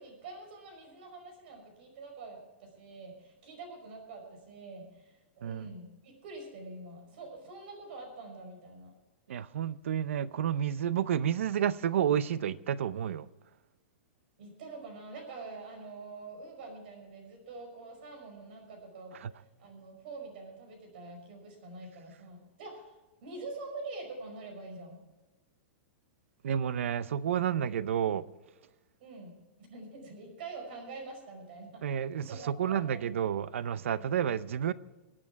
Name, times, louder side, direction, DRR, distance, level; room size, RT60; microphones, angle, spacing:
voice 1, 0.0-8.9 14.4-19.2 19.6-25.0 29.0-29.4 29.7-31.9 32.2-33.1 33.9-34.1, right 3 dB, 55° right, 5.3 m, -45 dB
voice 2, 9.3-13.3 19.2-19.3 26.4-28.2 31.8-34.7, right 9 dB, 90° right, 0.6 m, -30 dB
24.0 x 8.8 x 4.6 m
supercardioid pair, 170°, 7 cm